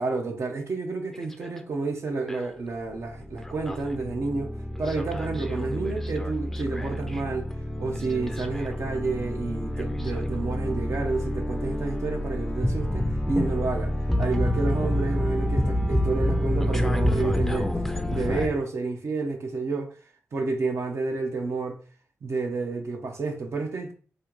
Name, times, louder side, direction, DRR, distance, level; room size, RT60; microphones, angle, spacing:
voice 1, 0.0-4.5 4.8-7.5 7.8-13.9 14.2-17.7 18.1-19.9 20.3-21.8 22.2-23.9, right 3 dB, 65° right, 0.9 m, -30 dB
sound 1, 1.1-1.6 2.3-2.5 2.9-18.5, left 1 dB, 5° left, 0.5 m, -28 dB
4.3 x 2.6 x 4.6 m
wide cardioid pair, 115°, 5 cm